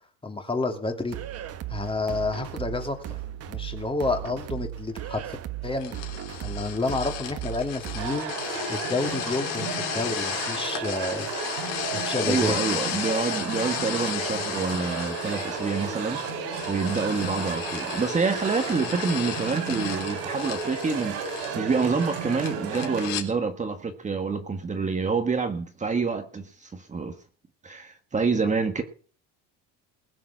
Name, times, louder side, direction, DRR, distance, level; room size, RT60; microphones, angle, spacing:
voice 1, 0.2-1.2 1.7-3.2 3.5-5.4 5.6-6.0 6.4-8.3 8.7-11.3 11.9-12.6, left 3 dB, 15° left, 5 dB, 2.8 m, -29 dB
sound 1, 1.1-8.2, right 12 dB, 45° right, 1.4 m, -36 dB
sound 2, 5.8-23.3, left 11 dB, 75° left, 3.6 m, -34 dB
sound 3, 8.0-23.1, right 6 dB, 90° right, 5.8 m, -33 dB
voice 2, 12.2-27.2 27.6-28.8, right 4 dB, 20° right, 6 dB, 1.5 m, -27 dB
20.5 x 7.2 x 6.1 m, 0.42 s
cardioid pair, 115°, 33 cm